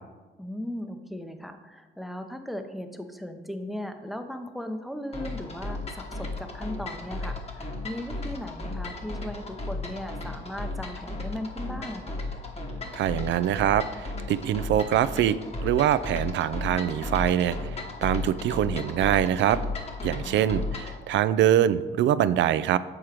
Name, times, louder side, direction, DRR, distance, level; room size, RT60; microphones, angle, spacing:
voice 1, 0.4-12.2 20.2-20.6, equal, ahead, 7 dB, 0.7 m, -37 dB
sound 1, 5.1-21.0, left 2 dB, 30° left, 1.2 m, -35 dB
voice 2, 12.9-15.4 15.6-19.6 20.0-22.8, right 11 dB, 70° right, 15 dB, 0.4 m, -24 dB
7.4 x 4.5 x 4.9 m, 1.2 s
cardioid pair, 90°, 20 cm